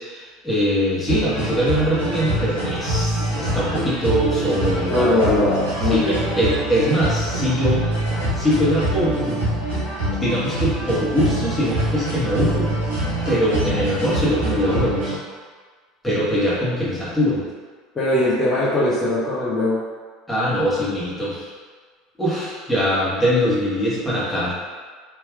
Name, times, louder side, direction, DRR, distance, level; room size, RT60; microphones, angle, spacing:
voice 1, 0.0-5.1 5.9-6.0 6.4-7.9 8.3-9.4 10.2-12.7 13.2-15.1 16.0-17.4 20.3-21.5 22.2-24.5, equal, 10° left, -9 dB, 1.4 m, -22 dB
sound 1, 1.1-15.2, right 1 dB, 85° right, 1.2 m, -25 dB
voice 2, 4.9-6.5 17.9-19.8, left 1 dB, 25° left, -11 dB, 0.9 m, -20 dB
3.4 x 2.9 x 2.3 m, 1.5 s
hypercardioid pair, 75°, 0 cm